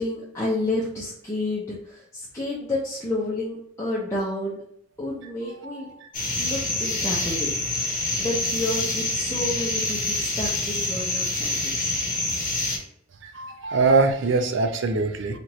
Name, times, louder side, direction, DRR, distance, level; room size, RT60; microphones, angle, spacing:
voice 1, 0.0-4.6 5.0-5.9 6.4-7.5 8.2-11.7, left 1 dB, 15° left, -7 dB, 0.7 m, -30 dB
voice 2, 5.6-6.1 13.2-15.4, right 3 dB, 65° right, 7 dB, 0.5 m, -23 dB
sound 1, 6.1-12.8, left 2 dB, 40° left, 1.0 m, -26 dB
4.4 x 2.5 x 3.1 m, 0.70 s
head